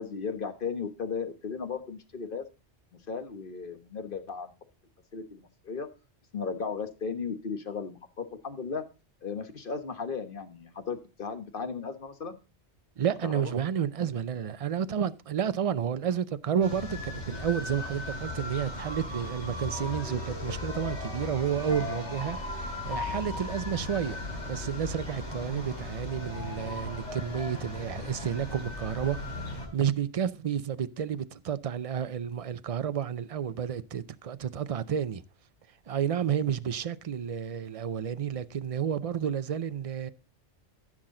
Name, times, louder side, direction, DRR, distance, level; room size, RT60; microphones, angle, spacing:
voice 1, 0.0-2.4 3.1-4.5 5.1-5.9 6.3-8.8 9.2-12.4 13.2-13.5, left 5 dB, 50° left, 1.4 m, -35 dB
voice 2, 13.0-24.2 24.5-35.2 35.9-40.1, right 8 dB, 45° right, 0.5 m, -31 dB
sound 1, 16.6-29.7, left 2 dB, 80° left, 4.1 m, -37 dB
14.5 x 6.2 x 3.8 m
omnidirectional pair, 1.2 m